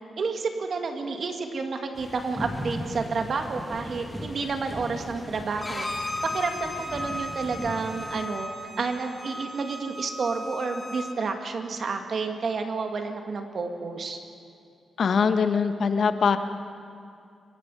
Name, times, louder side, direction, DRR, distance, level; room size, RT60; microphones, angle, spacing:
voice 1, 0.2-5.9 6.2-8.5 8.8-14.2, right 4 dB, 60° right, 5 dB, 2.2 m, -30 dB
sound 1, 2.0-8.3, equal, 5° right, 1.8 m, -38 dB
Bowed string instrument, 5.6-11.2, left 1 dB, 25° left, 2.6 m, -36 dB
voice 2, 15.0-16.4, left 5 dB, 65° left, 9 dB, 1.2 m, -22 dB
29.0 x 17.0 x 5.7 m, 2.5 s
cardioid pair, 90°, 0 cm